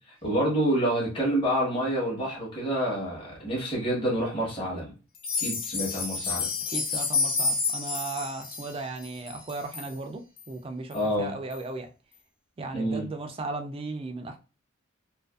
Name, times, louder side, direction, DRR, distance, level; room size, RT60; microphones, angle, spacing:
voice 1, 0.2-4.9 5.4-6.5 10.9-11.3 12.7-13.1, right 1 dB, 25° left, 1.0 m, -27 dB
sound 1, 5.1-9.9 10.4-10.5 10.9-11.0 11.5-11.6, left 4 dB, 45° left, 0.7 m, -30 dB
voice 2, 6.7-11.9 12.6-14.4, right 3 dB, 25° right, 0.3 m, -36 dB
2.5 x 2.5 x 2.3 m
head